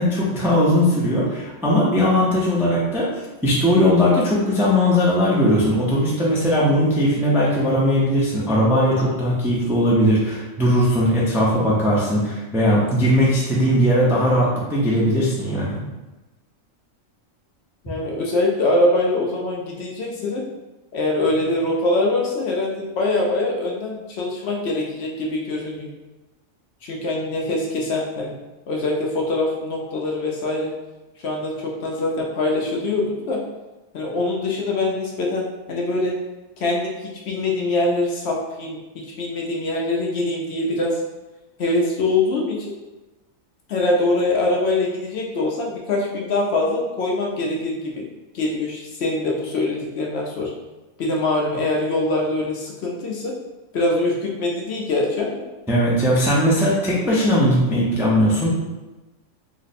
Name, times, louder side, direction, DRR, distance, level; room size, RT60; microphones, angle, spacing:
voice 1, 0.0-3.1 3.4-15.8 55.7-58.5, equal, 5° right, -6 dB, 0.4 m, -19 dB
voice 2, 17.8-20.4 20.9-25.9 26.8-28.3 28.7-30.7 31.2-33.4 33.9-36.1 36.6-41.0 41.6-42.7 43.7-48.1 48.3-50.5 51.0-53.3 53.7-55.4, left 2 dB, 65° left, -2 dB, 0.8 m, -23 dB
3.2 x 2.1 x 4.1 m, 1.1 s
omnidirectional pair, 1.4 m